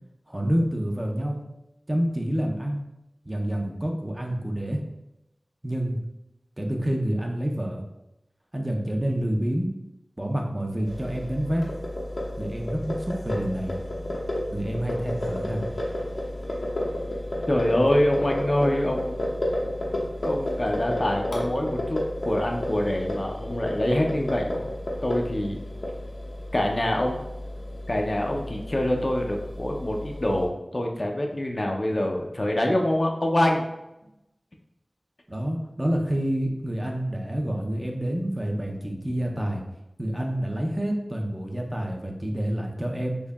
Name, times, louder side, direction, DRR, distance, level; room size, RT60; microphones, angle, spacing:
voice 1, 0.3-1.4 1.9-2.8 3.3-4.8 5.6-6.0 6.6-7.8 8.5-9.7 10.2-11.7 12.4-13.8 14.5-15.7 35.3-39.6 40.0-43.2, right 1 dB, 20° right, 1 dB, 0.5 m, -28 dB
sound 1, 10.8-30.5, left 1 dB, 80° left, 0.7 m, -32 dB
voice 2, 17.5-19.2 20.2-24.7 25.0-25.7 26.5-27.3 27.9-33.6, left 1 dB, 45° left, 1 dB, 0.4 m, -25 dB
4.5 x 2.7 x 2.3 m, 0.90 s
wide cardioid pair, 70°, 0 cm